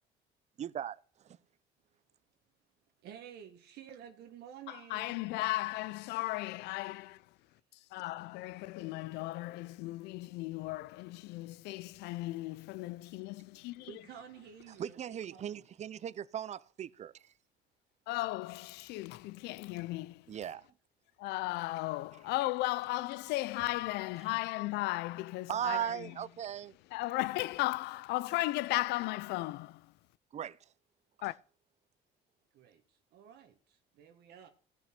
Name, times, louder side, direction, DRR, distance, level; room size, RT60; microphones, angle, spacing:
voice 1, 0.6-1.4 14.8-17.3 20.3-20.7 22.1-22.2 24.2-24.5 25.5-26.7 30.3-30.6 31.2-31.3, right 10 dB, 40° right, 0.6 m, -38 dB
voice 2, 3.0-5.3 13.8-15.7 32.5-34.5, right 9 dB, 75° right, 1.5 m, -52 dB
voice 3, 4.9-7.2 7.9-13.9 18.1-20.1 21.2-25.8 26.9-29.7 31.2-31.3, left 19 dB, 90° left, 0.5 m, -35 dB
16.5 x 6.1 x 5.9 m
cardioid pair, 110°, 17 cm